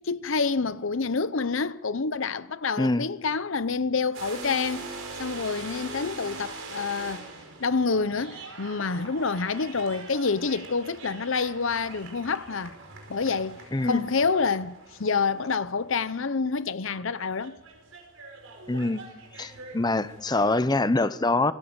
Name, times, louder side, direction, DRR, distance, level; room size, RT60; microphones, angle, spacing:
voice 1, 0.0-4.8 5.2-7.3 7.6-12.7 13.1-17.6, left 4 dB, 65° left, 0.8 m, -27 dB
sound 1, 4.1-16.0 16.9-20.6, right 3 dB, 70° right, 5.1 m, -43 dB
voice 2, 13.7-14.0 18.7-19.0 19.4-21.5, left 2 dB, 20° left, 0.7 m, -24 dB
28.0 x 16.0 x 7.3 m
head